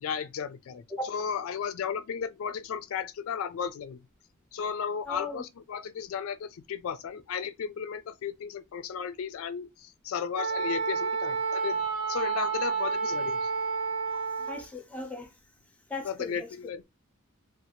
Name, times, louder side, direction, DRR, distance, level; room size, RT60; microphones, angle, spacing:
voice 1, 0.0-0.8 1.1-4.0 4.5-11.8 12.1-13.5 16.1-16.8, left 7 dB, 70° left, 0.3 m, -34 dB
voice 2, 5.1-5.4 14.1-15.3 15.9-16.5, left 3 dB, 5° left, 0.6 m, -37 dB
Wind instrument woodwind instrument, 10.4-14.6, right 5 dB, 65° right, 0.9 m, -30 dB
2.7 x 2.3 x 2.8 m
head